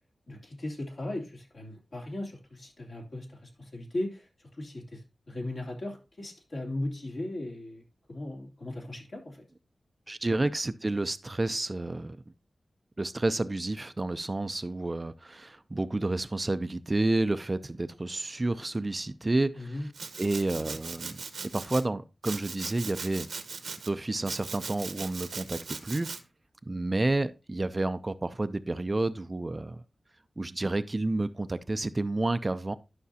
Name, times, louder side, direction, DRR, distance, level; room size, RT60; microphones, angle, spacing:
voice 1, 0.3-9.4 19.5-19.9 20.5-20.7, left 1 dB, 60° left, 3.0 m, -38 dB
voice 2, 10.1-12.2 13.0-19.7 20.2-21.2 21.5-23.3 23.9-26.1 26.7-29.8 30.4-32.7, right 2 dB, 30° right, 0.4 m, -30 dB
Domestic sounds home sounds, 19.9-21.8 22.2-23.9 24.2-26.2, right 4 dB, 80° right, 1.0 m, -39 dB
11.5 x 5.9 x 2.8 m
wide cardioid pair, 90°, 0 cm